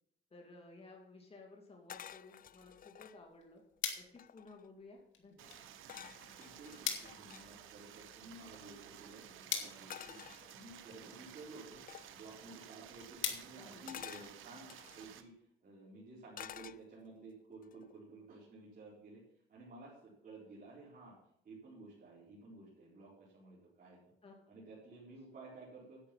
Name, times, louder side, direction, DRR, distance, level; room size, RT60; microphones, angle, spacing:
voice 1, 0.3-3.6 4.0-5.7 13.5-13.9 24.2-24.4, left 3 dB, 30° left, 0 dB, 2.7 m, -56 dB
sound 1, 1.9-3.2 3.8-3.9 4.1-4.7 5.9-7.5 9.9-11.0 11.9-12.2 13.9-15.1 16.3-17.2 17.6-18.0, left 10 dB, 45° left, 0.4 m, -51 dB
sound 2, 3.1-14.5, left 8 dB, 75° left, 2.3 m, -46 dB
Stream, 5.4-15.2, right 10 dB, 85° right, 1.1 m, -54 dB
voice 2, 6.4-10.2 10.5-11.8 12.1-15.3 15.6-19.2 19.5-21.1 21.4-24.1 24.5-26.0, right 2 dB, 45° right, -7 dB, 4.3 m, -54 dB
10.5 x 8.8 x 5.8 m, 0.74 s
cardioid pair, 90°, 20 cm